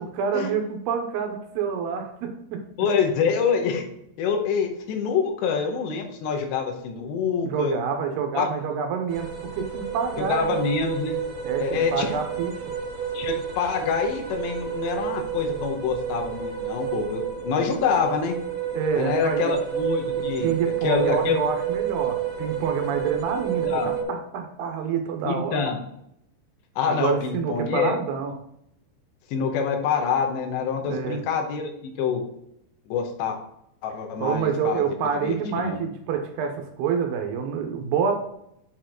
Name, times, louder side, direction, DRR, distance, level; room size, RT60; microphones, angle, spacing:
voice 1, 0.0-2.6 7.4-10.6 11.4-12.5 18.7-19.6 20.1-25.7 26.9-28.3 30.8-31.2 34.2-38.1, right 6 dB, 75° right, 4 dB, 2.7 m, -27 dB
voice 2, 2.8-3.8 4.2-7.8 8.3-8.5 10.3-11.2 11.6-12.1 13.1-18.4 19.0-20.6 20.8-21.4 23.7-23.9 25.2-25.8 26.8-28.0 29.3-32.2 32.9-33.4 33.8-34.8 35.2-35.9, left 6 dB, 85° left, 3 dB, 3.2 m, -26 dB
sound 1, 9.1-24.0, right 8 dB, 60° right, 2.6 m, -30 dB
7.8 x 4.6 x 3.8 m, 0.76 s
omnidirectional pair, 5.0 m